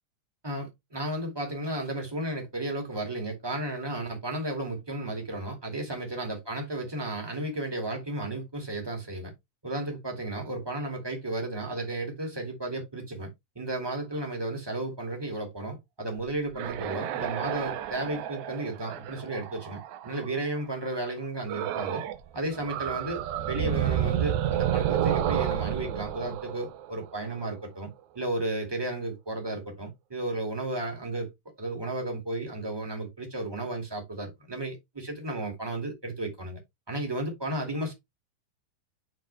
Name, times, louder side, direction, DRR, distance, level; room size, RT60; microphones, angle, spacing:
voice 1, 0.4-9.3 9.6-22.0 22.3-27.9 28.1-31.3 31.6-36.6 36.9-37.9, right 2 dB, 10° right, 1.7 m, -33 dB
sound 1, 16.4-20.4 21.5-22.2 22.5-27.4, right 10 dB, 70° right, 1.9 m, -30 dB
9.2 x 4.4 x 3.3 m
omnidirectional pair, 4.0 m